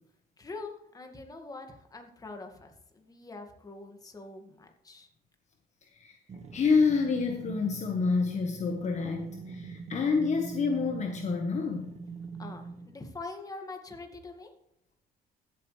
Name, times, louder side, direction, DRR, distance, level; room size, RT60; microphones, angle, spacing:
voice 1, 0.4-5.1 12.4-14.5, left 3 dB, 20° left, 4 dB, 2.1 m, -44 dB
sound 1, 6.3-13.0, right 5 dB, 40° right, 1.7 m, -42 dB
voice 2, 6.5-11.9, left 5 dB, 45° left, 4 dB, 1.4 m, -28 dB
15.5 x 8.2 x 3.4 m, 0.77 s
cardioid pair, 110°, 17 cm